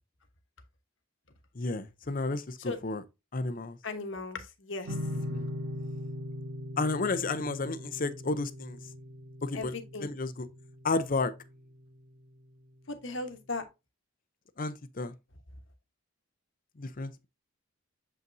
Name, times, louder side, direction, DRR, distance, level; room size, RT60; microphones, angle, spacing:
voice 1, 1.6-3.0 3.3-3.8 5.3-5.4 6.8-8.8 9.4-9.7 10.0-10.5 10.8-11.3 14.6-15.1 16.8-17.1, left 3 dB, 40° left, 0.6 m, -32 dB
voice 2, 3.8-4.9 9.5-10.1 12.9-13.6, left 3 dB, 65° left, 1.2 m, -37 dB
sound 1, 4.8-12.1, left 1 dB, 75° right, 2.4 m, -40 dB
7.4 x 5.4 x 2.6 m
head